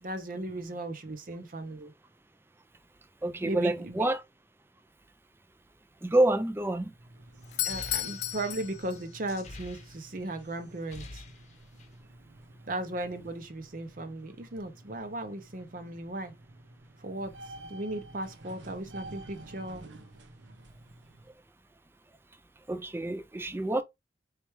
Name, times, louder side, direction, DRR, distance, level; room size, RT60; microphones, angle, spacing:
voice 1, 0.0-1.9 3.4-4.1 7.6-11.2 12.7-16.3 17.0-19.9, right 1 dB, 45° right, 0.7 m, -37 dB
voice 2, 3.2-4.2 6.0-6.9 22.7-23.8, right 1 dB, 15° right, 0.4 m, -27 dB
sound 1, 6.9-21.3, right 1 dB, 90° right, 0.8 m, -50 dB
Doorbell, 7.4-9.4, left 15 dB, 65° left, 0.4 m, -34 dB
sound 2, 7.4-10.4 10.7-12.0, left 2 dB, 40° left, 0.8 m, -47 dB
4.4 x 3.3 x 3.0 m
head